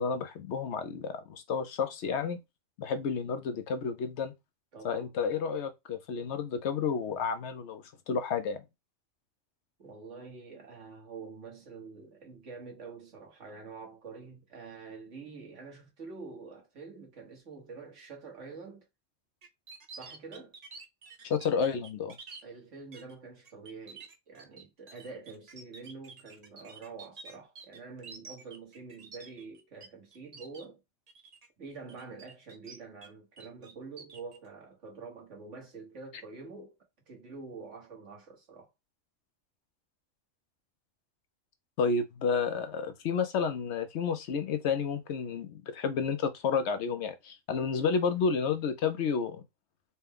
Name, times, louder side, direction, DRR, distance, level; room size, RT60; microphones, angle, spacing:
voice 1, 0.0-2.4 2.8-4.3 4.8-8.6 21.2-22.2 41.8-49.4, left 5 dB, 70° left, 0.9 m, -31 dB
voice 2, 4.7-5.2 9.8-18.8 19.9-20.5 22.4-30.8 31.6-36.7 37.1-38.7, right 4 dB, 70° right, 1.7 m, -46 dB
sound 1, 19.4-22.4 22.9-23.1 23.4-29.9 30.1-30.6 31.1-31.5 31.9-33.1 33.4-34.4, right 4 dB, 45° right, 0.6 m, -49 dB
4.3 x 2.2 x 3.5 m
omnidirectional pair, 1.3 m